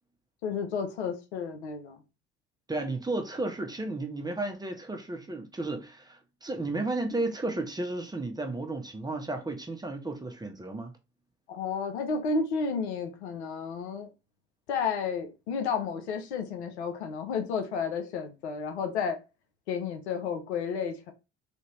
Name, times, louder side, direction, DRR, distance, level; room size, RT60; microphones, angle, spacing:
voice 1, 0.4-2.0 11.5-14.1 14.7-19.2 19.7-21.1, left 5 dB, 80° left, 0.7 m, -32 dB
voice 2, 2.7-10.9, right 2 dB, 10° right, 0.8 m, -33 dB
3.5 x 2.7 x 3.0 m
hypercardioid pair, 60°, 33 cm